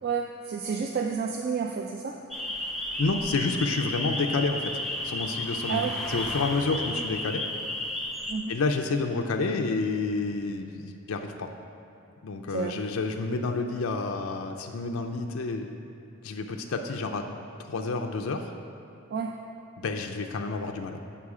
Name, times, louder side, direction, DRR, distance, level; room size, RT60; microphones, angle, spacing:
voice 1, 0.0-2.2 5.7-6.0 8.3-8.5 12.5-12.8 19.1-19.3, right 6 dB, 50° right, 3 dB, 0.4 m, -30 dB
sound 1, 2.3-8.3, left 1 dB, ahead, 0.7 m, -33 dB
voice 2, 3.0-4.7 5.0-7.4 8.5-11.5 12.2-15.7 16.2-17.3 17.7-18.5 19.8-21.0, left 3 dB, 85° left, 3 dB, 0.5 m, -29 dB
8.4 x 5.5 x 4.8 m, 2.8 s
head